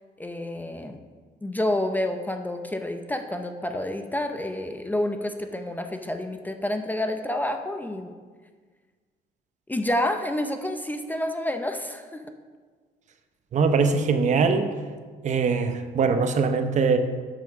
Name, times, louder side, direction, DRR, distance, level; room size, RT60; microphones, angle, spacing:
voice 1, 0.2-1.0 1.4-8.2 9.7-12.2, left 1 dB, 10° left, 6 dB, 0.5 m, -29 dB
voice 2, 13.5-14.7 15.2-17.0, right 5 dB, 45° right, 8 dB, 0.8 m, -22 dB
7.5 x 5.9 x 6.1 m, 1.5 s
cardioid pair, 110°, 17 cm